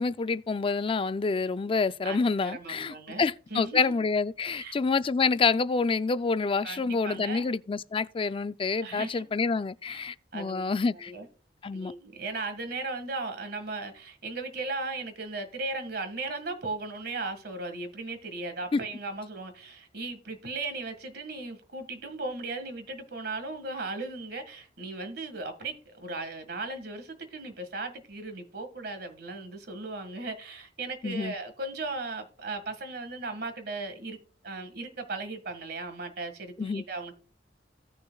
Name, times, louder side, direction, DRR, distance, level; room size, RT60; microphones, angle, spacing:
voice 1, 0.0-11.1 11.6-11.9 18.7-18.8 31.0-31.3 36.6-36.8, left 4 dB, 30° left, 0.4 m, -27 dB
voice 2, 2.0-3.8 4.5-4.8 6.6-7.5 8.8-9.3 9.9-10.1 10.3-11.3 11.7-34.2 34.4-37.1, right 3 dB, 60° right, 1.7 m, -37 dB
16.5 x 6.4 x 2.3 m
head